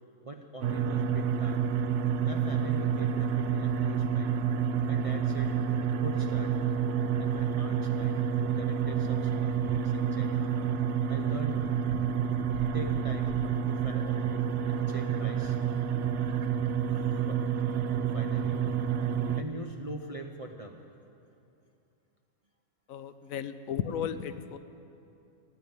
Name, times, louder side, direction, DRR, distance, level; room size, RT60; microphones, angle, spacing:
voice 1, 0.2-1.6 2.2-4.3 4.9-5.6 5.9-6.5 7.2-10.5 11.1-11.7 12.7-13.4 13.7-15.6 17.2-17.4 18.1-18.6 19.4-20.8, right 2 dB, 35° right, 2 dB, 0.6 m, -42 dB
sound 1, 0.6-19.4, right 7 dB, 65° right, 0.8 m, -29 dB
voice 2, 22.9-24.6, left 8 dB, 75° left, 12 dB, 1.0 m, -34 dB
15.5 x 8.8 x 9.4 m, 2.7 s
omnidirectional pair, 1.5 m